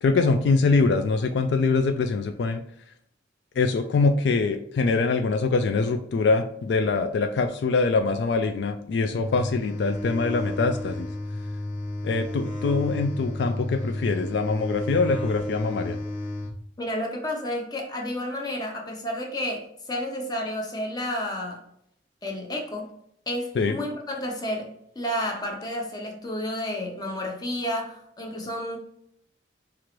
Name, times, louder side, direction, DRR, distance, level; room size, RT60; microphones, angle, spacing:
voice 1, 0.0-2.6 3.6-11.1 12.0-16.0 23.6-23.8, left 4 dB, 70° left, 6 dB, 0.3 m, -23 dB
sound 1, 8.9-16.6, left 1 dB, 85° left, 0.8 m, -32 dB
voice 2, 16.8-21.6 22.2-22.9 23.3-28.8, left 1 dB, 20° left, 1 dB, 0.8 m, -31 dB
4.5 x 2.5 x 3.0 m, 0.71 s
head